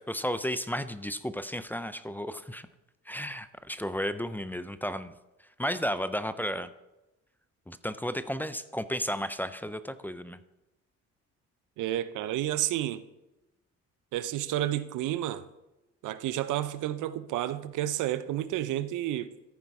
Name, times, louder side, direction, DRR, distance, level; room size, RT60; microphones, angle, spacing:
voice 1, 0.0-2.7 3.1-5.1 5.6-6.7 7.7-10.4, equal, 5° left, 0.5 m, -33 dB
voice 2, 11.8-13.0 14.1-15.5 16.0-19.3, right 13 dB, 85° right, 0.6 m, -30 dB
14.0 x 5.2 x 4.7 m
cardioid pair, 90°, 30 cm